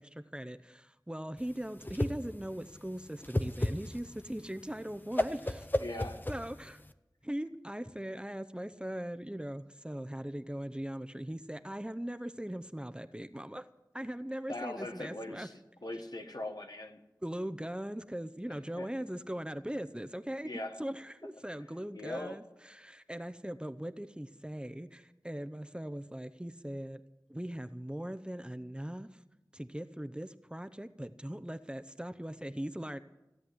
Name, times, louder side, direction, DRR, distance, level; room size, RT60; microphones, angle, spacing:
voice 1, 0.0-5.7 6.3-6.8 7.2-13.7 13.9-15.5 17.2-20.5 20.8-27.0 27.3-29.2 29.5-33.0, right 1 dB, 15° right, 9 dB, 0.7 m, -40 dB
Whoosh swoosh swish, 1.4-6.9, left 1 dB, 25° left, 0.8 m, -34 dB
voice 2, 5.8-6.2 14.5-17.0 18.8-18.9 20.4-20.8 21.9-22.4, left 1 dB, 70° left, 5 dB, 1.4 m, -40 dB
16.0 x 7.8 x 9.9 m, 0.96 s
wide cardioid pair, 40°, 7 cm